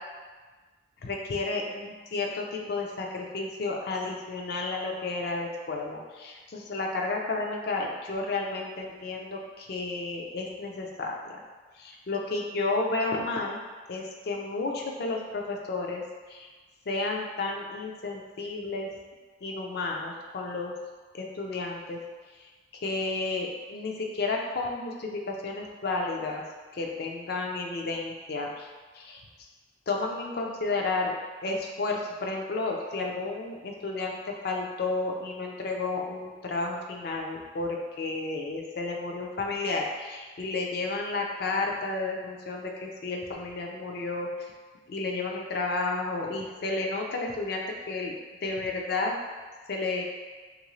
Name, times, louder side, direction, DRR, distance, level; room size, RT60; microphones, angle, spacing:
voice 1, 1.0-11.1 11.7-13.6 13.9-16.0 16.3-16.5 16.9-18.9 19.4-20.7 21.1-22.0 22.8-26.4 26.7-28.7 28.9-29.2 29.9-31.1 31.4-34.2 34.4-44.3 44.9-48.1 48.4-49.2 49.7-50.0, left 3 dB, 60° left, 0 dB, 0.4 m, -32 dB
3.1 x 2.5 x 3.0 m, 1.4 s
head